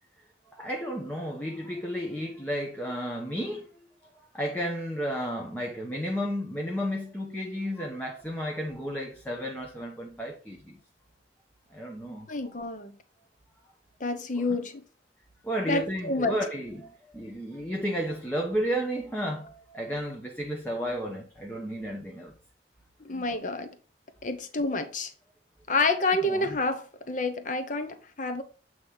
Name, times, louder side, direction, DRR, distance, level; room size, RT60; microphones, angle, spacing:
voice 1, 0.5-3.7 4.3-10.8 11.7-12.3 14.4-14.6 15.4-22.3 23.1-23.2 26.2-26.6, equal, 10° left, 0.9 m, -33 dB
voice 2, 12.3-13.0 14.0-14.8 15.7-16.4 23.0-23.7 24.2-25.1 25.7-28.4, left 2 dB, 45° left, 0.9 m, -28 dB
8.3 x 3.1 x 5.6 m
head